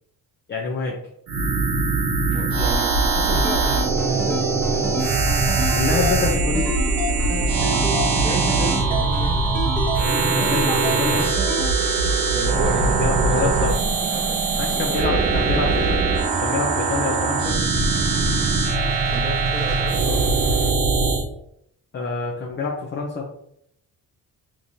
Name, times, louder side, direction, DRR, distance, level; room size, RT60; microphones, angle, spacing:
voice 1, 0.5-1.0 5.8-6.7 10.3-11.2 12.9-13.7 14.6-16.0 16.4-17.6 21.9-23.3, left 4 dB, 30° left, -1 dB, 0.6 m, -26 dB
sound 1, 1.3-21.2, right 3 dB, 70° right, 0.9 m, -21 dB
voice 2, 2.3-4.4 8.2-9.7 12.3-15.3 19.1-20.3, right 2 dB, 15° right, 2 dB, 0.6 m, -32 dB
sound 2, 3.2-11.7, equal, 5° left, 1.1 m, -29 dB
sound 3, 10.7-20.7, right 1 dB, 35° right, 1.4 m, -38 dB
3.9 x 3.1 x 2.6 m, 0.71 s
cardioid pair, 125°, 37 cm